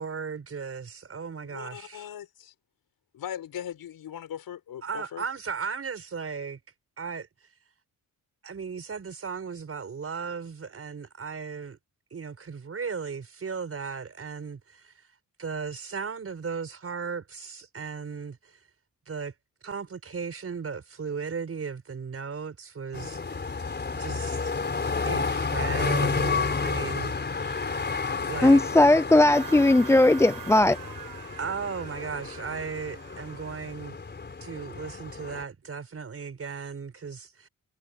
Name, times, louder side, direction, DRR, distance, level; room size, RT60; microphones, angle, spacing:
voice 1, 0.0-2.1 4.8-6.6 7.0-7.3 8.4-11.8 12.1-14.9 15.4-18.6 19.1-19.3 19.6-23.5 23.9-24.5 25.1-27.2 28.3-28.6 31.4-34.0 34.4-37.5, right 5 dB, 40° right, 6.0 m, -36 dB
voice 2, 1.4-2.5 3.1-5.2 27.3-27.7 28.1-28.6, left 10 dB, 80° left, 6.0 m, -40 dB
sound 1, 22.9-35.4, left 4 dB, 30° left, 4.5 m, -31 dB
voice 3, 28.4-30.8, left 2 dB, 10° left, 0.3 m, -18 dB
sound 2, 29.3-33.8, right 10 dB, 70° right, 7.7 m, -45 dB
cardioid pair, 130°, 35 cm